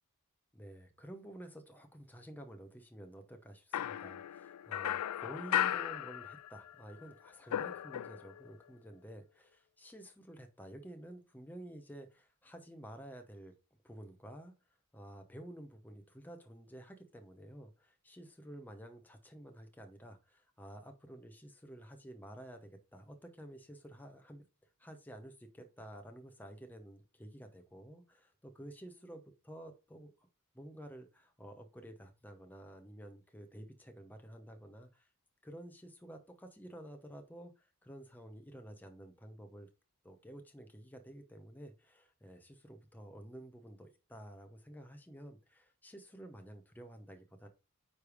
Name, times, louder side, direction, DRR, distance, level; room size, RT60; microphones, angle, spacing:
voice 1, 0.5-13.5 13.8-14.5 14.9-24.4 24.8-30.1 30.5-35.1 35.4-39.7 40.0-47.5, right 1 dB, 10° left, 5 dB, 0.8 m, -51 dB
sound 1, 3.7-6.7 7.0-8.5, left 11 dB, 85° left, 0.3 m, -36 dB
9.7 x 3.4 x 4.9 m, 0.30 s
head